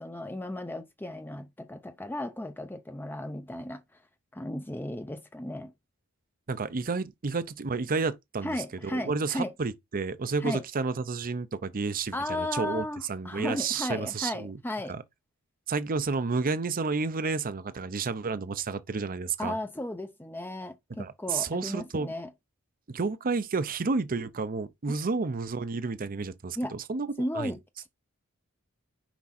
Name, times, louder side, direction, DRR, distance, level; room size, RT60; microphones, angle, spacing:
voice 1, 0.0-3.8 4.3-5.7 8.4-9.5 10.4-10.6 12.1-14.9 19.4-22.3 24.9-25.0 26.6-26.8 27.2-27.6, left 1 dB, 10° left, 0.6 m, -35 dB
voice 2, 6.5-8.6 8.8-14.6 14.9-15.0 15.7-19.6 21.0-22.1 22.9-27.1 27.3-27.5, right 4 dB, 40° right, 0.6 m, -31 dB
6.0 x 5.3 x 4.2 m
head